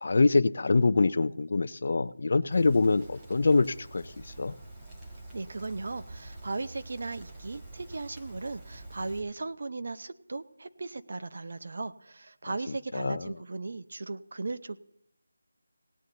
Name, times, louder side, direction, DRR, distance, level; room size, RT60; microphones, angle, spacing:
voice 1, 0.0-4.1 4.4-4.5 12.9-13.3, left 3 dB, 50° left, 14 dB, 0.4 m, -24 dB
Rain, 2.5-9.2, right 2 dB, 10° right, 1.3 m, -47 dB
voice 2, 5.3-14.8, right 3 dB, 50° right, 11 dB, 0.7 m, -37 dB
18.0 x 8.3 x 3.9 m, 0.73 s
figure-of-eight pair, 170°, 0 cm